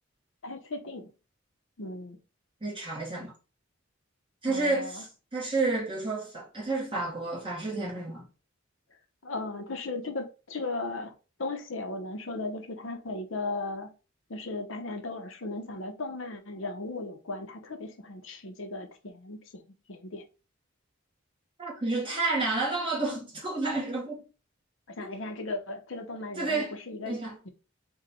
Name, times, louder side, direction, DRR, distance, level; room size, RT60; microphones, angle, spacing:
voice 1, 0.4-1.1 1.8-2.2 4.5-5.0 9.2-13.9 14.3-19.6 19.9-20.2 24.9-27.5, left 2 dB, 70° left, 0.8 m, -36 dB
voice 2, 2.6-3.3 4.4-8.3 21.6-24.2 25.0-25.1 26.4-26.7 27.0-27.4, right 3 dB, 25° right, 1.3 m, -30 dB
5.2 x 2.3 x 4.1 m
head